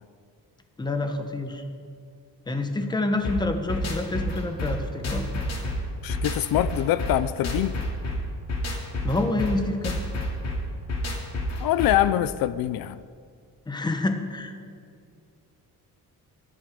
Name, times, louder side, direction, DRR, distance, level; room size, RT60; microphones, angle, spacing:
voice 1, 0.8-1.6 2.5-5.4 9.0-10.0 13.7-14.5, left 2 dB, 10° left, 6 dB, 1.1 m, -27 dB
sound 1, 3.2-12.1, left 1 dB, 50° left, 2.5 m, -29 dB
voice 2, 6.0-7.8 11.6-13.0, left 13 dB, 80° left, 15 dB, 0.6 m, -24 dB
23.5 x 11.0 x 5.2 m, 2.2 s
cardioid pair, 180°, 34 cm